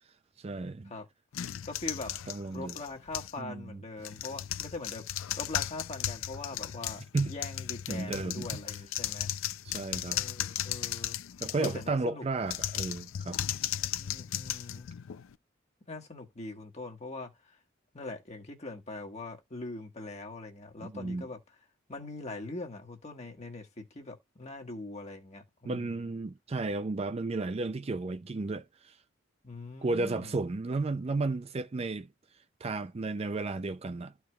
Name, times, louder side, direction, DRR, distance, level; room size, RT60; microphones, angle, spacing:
voice 1, 0.4-0.9 2.3-2.8 3.4-3.8 7.1-7.3 7.9-8.5 9.6-10.2 11.4-13.4 20.8-21.3 25.7-28.9 29.8-32.1 32.6-34.1, right 3 dB, 30° right, 0.4 m, -33 dB
sound 1, 1.3-3.4 4.0-11.9 12.4-15.3, left 11 dB, 85° left, 0.4 m, -36 dB
voice 2, 1.6-2.1 2.5-9.3 10.1-11.2 11.6-12.2 13.7-14.9 15.9-17.3 17.9-21.4 21.9-26.0 29.4-30.4, left 2 dB, 35° left, 1.4 m, -42 dB
13.5 x 4.7 x 2.3 m
head